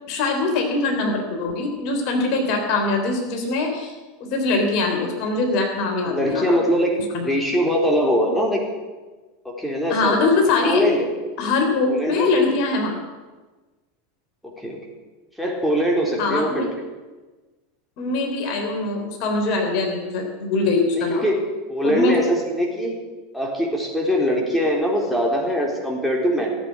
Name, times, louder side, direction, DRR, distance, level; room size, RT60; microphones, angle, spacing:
voice 1, 0.1-3.9 4.2-6.6 7.1-7.3 9.9-10.8 11.4-12.9 16.2-16.7 18.0-21.3 21.8-22.2, left 3 dB, 50° left, 2 dB, 3.6 m, -22 dB
voice 2, 6.0-7.0 7.2-8.6 9.4-10.3 10.6-11.1 11.9-12.3 14.4-14.8 15.4-16.7 21.0-23.0 23.3-26.6, equal, ahead, -1 dB, 3.8 m, -22 dB
16.5 x 8.5 x 9.5 m, 1.3 s
figure-of-eight pair, 85°, 0 cm